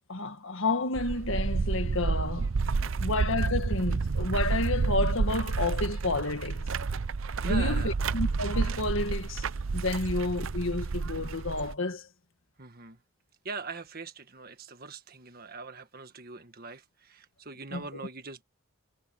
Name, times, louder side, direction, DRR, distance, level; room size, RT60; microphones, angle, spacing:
voice 1, 0.1-2.5 2.8-6.7 7.4-9.5 9.7-12.1 17.7-17.8, left 2 dB, 60° left, 1.8 m, -30 dB
sound 1, 1.0-11.8, right 4 dB, 65° right, 0.6 m, -30 dB
voice 2, 7.4-8.0 12.6-13.0 13.4-18.4, right 3 dB, 40° right, 1.7 m, -41 dB
head